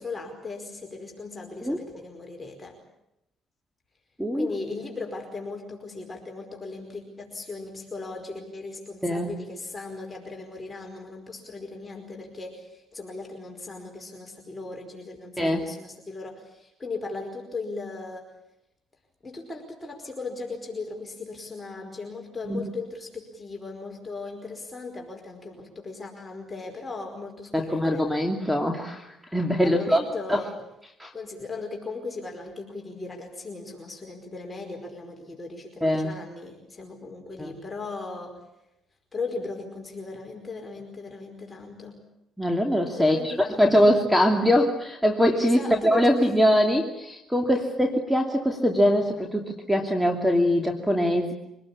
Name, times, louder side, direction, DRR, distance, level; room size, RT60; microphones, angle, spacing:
voice 1, 0.0-2.7 4.3-18.3 19.2-28.1 29.5-30.5 31.1-38.4 39.1-42.0 42.9-43.6 45.4-46.3 47.5-47.6, left 3 dB, 20° left, 1 dB, 5.0 m, -37 dB
voice 2, 9.0-9.3 15.4-15.7 22.5-22.6 27.5-30.0 30.3-30.4 31.0-31.1 35.8-36.1 37.4-37.5 42.4-51.3, equal, ahead, 3 dB, 2.7 m, -22 dB
25.0 x 19.5 x 8.6 m, 0.86 s
supercardioid pair, 80°, 0 cm